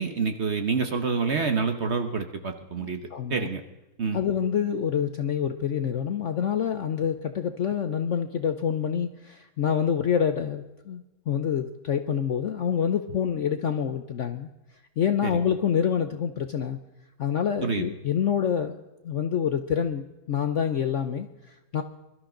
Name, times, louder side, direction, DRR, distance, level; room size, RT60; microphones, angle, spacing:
voice 1, 0.0-3.0 3.3-3.6 4.0-4.2 15.2-15.3 17.6-17.8, right 5 dB, 45° right, 6 dB, 1.1 m, -27 dB
voice 2, 2.8-3.5 4.1-14.5 15.0-16.8 17.2-18.8 19.0-21.8, left 8 dB, 60° left, 8 dB, 0.8 m, -27 dB
22.5 x 12.5 x 3.8 m, 1.0 s
omnidirectional pair, 1.9 m